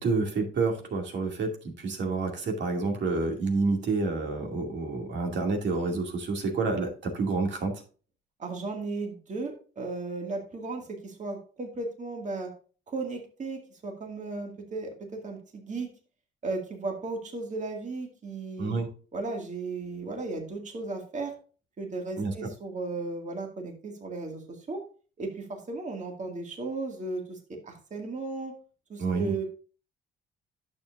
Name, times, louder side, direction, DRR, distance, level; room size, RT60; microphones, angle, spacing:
voice 1, 0.0-7.8 18.6-18.9 22.2-22.3 29.0-29.3, right 3 dB, 65° right, 2 dB, 2.4 m, -29 dB
voice 2, 8.4-12.5 12.9-15.9 16.4-18.8 19.1-21.3 21.8-24.8 25.2-28.5 28.9-29.4, right 3 dB, 40° right, 2 dB, 2.1 m, -35 dB
10.5 x 7.2 x 2.5 m, 0.37 s
cardioid pair, 90°, 20 cm